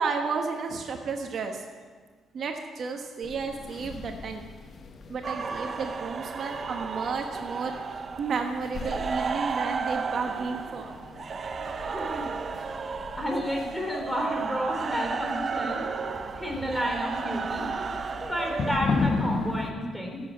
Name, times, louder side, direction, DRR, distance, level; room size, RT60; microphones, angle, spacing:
voice 1, 0.0-1.6 2.3-4.4 5.1-12.0, right 5 dB, 55° right, 4 dB, 1.2 m, -33 dB
sound 1, 3.2-19.7, left 4 dB, 50° left, 1.2 m, -37 dB
sound 2, 5.2-18.8, right 5 dB, 40° right, 0.7 m, -33 dB
voice 2, 11.7-12.2 13.2-15.8 16.4-17.7 18.2-20.2, equal, 5° left, 1 dB, 3.3 m, -31 dB
12.5 x 8.1 x 8.2 m, 1.5 s
cardioid pair, 90°, 0 cm